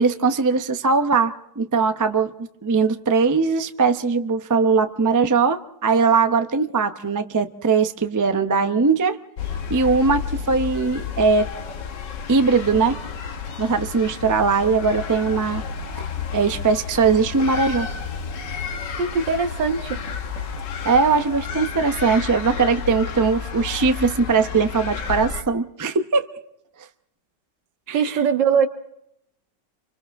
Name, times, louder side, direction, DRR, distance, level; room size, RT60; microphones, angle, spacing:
voice 1, 0.0-2.3 2.6-9.2 9.7-11.5 12.3-13.0 13.6-15.6 16.3-17.9 20.8-26.3 27.9-28.2, right 4 dB, 25° right, 8 dB, 0.4 m, -20 dB
sound 1, 9.4-25.4, left 6 dB, 85° left, 1.9 m, -31 dB
voice 2, 19.0-20.0 27.9-28.7, right 6 dB, 85° right, 7 dB, 2.0 m, -21 dB
30.0 x 25.0 x 3.5 m, 0.78 s
omnidirectional pair, 1.9 m